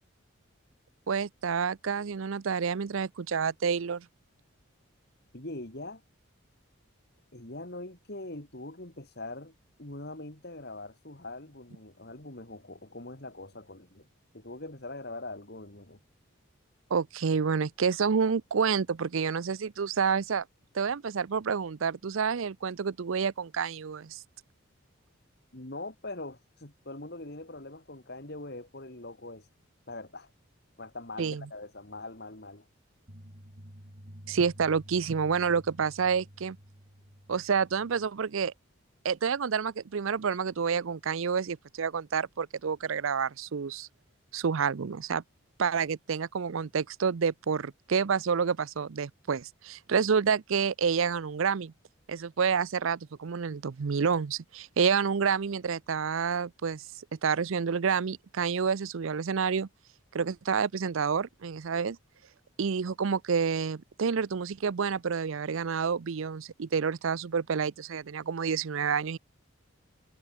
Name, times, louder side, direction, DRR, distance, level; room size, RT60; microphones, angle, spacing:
voice 1, 1.1-4.1 16.9-20.4 20.7-24.2 31.2-31.4 34.3-36.6 37.3-38.5 39.0-43.9 44.3-45.2 45.6-51.7 52.1-56.8 57.2-59.7 60.1-62.0 62.6-69.2, right 6 dB, 70° right, 0.5 m, -29 dB
voice 2, 5.3-6.0 7.3-9.5 9.8-14.1 14.3-16.0 25.5-29.5 29.9-30.3 30.8-32.6, left 2 dB, 50° left, 2.8 m, -42 dB
sound 1, 33.1-38.1, equal, 40° right, 6.8 m, -51 dB
head